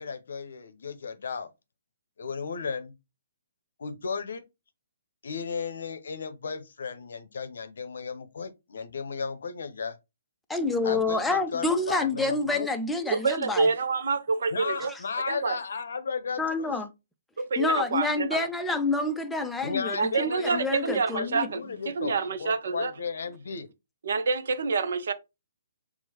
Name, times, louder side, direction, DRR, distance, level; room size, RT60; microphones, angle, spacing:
voice 1, 0.0-1.5 2.2-2.9 3.8-4.4 5.2-10.0 10.8-12.7 14.5-16.7 19.6-23.7, left 5 dB, 60° left, 0.7 m, -34 dB
voice 2, 10.5-13.7 14.9-15.0 16.4-16.9 17.6-21.5, left 3 dB, 5° left, 0.5 m, -28 dB
voice 3, 13.1-14.9 15.3-15.6 17.4-18.5 20.0-21.6 21.9-22.9 24.0-25.1, right 4 dB, 60° right, 0.5 m, -27 dB
6.0 x 2.1 x 2.8 m
figure-of-eight pair, 130°, 0 cm